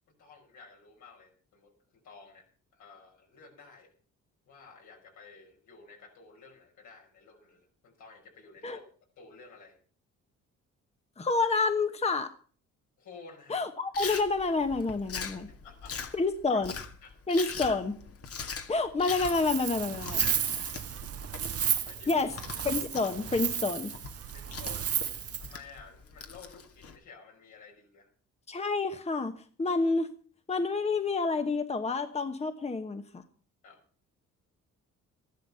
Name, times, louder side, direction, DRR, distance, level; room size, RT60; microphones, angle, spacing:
voice 1, 0.2-2.5 2.7-3.9 4.5-8.8 9.2-9.8 13.0-13.7 15.6-16.1 16.5-16.6 17.0-17.1 21.8-22.3 24.3-24.9 25.4-28.1 33.6-33.8, left 4 dB, 75° left, 1 dB, 5.8 m, -52 dB
voice 2, 11.2-12.3 13.5-15.5 16.1-16.7 17.3-17.9 18.7-20.2 22.1-22.3 22.6-23.9 28.5-29.3 29.6-30.1 30.5-33.2, left 3 dB, 20° left, 8 dB, 1.1 m, -28 dB
Chewing mastication, 13.9-27.0, left 5 dB, 50° left, 1.8 m, -42 dB
Wind, 19.1-25.6, right 9 dB, 50° right, 1.0 m, -33 dB
13.5 x 11.5 x 5.6 m, 0.42 s
cardioid pair, 90°, 30 cm